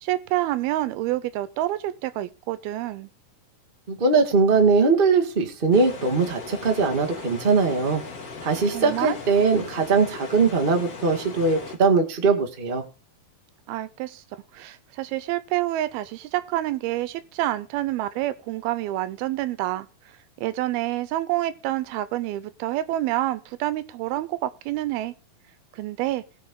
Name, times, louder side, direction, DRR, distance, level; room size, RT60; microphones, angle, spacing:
voice 1, 0.0-3.1 8.5-9.2 13.7-14.2 14.5-19.9 20.4-25.1 25.7-26.2, right 15 dB, 90° right, 2.7 m, -28 dB
voice 2, 3.9-8.0 8.4-12.8, right 4 dB, 35° right, 0.8 m, -21 dB
sound 1, 5.7-11.7, left 4 dB, 45° left, 2.9 m, -38 dB
19.5 x 6.6 x 3.8 m
omnidirectional pair, 4.3 m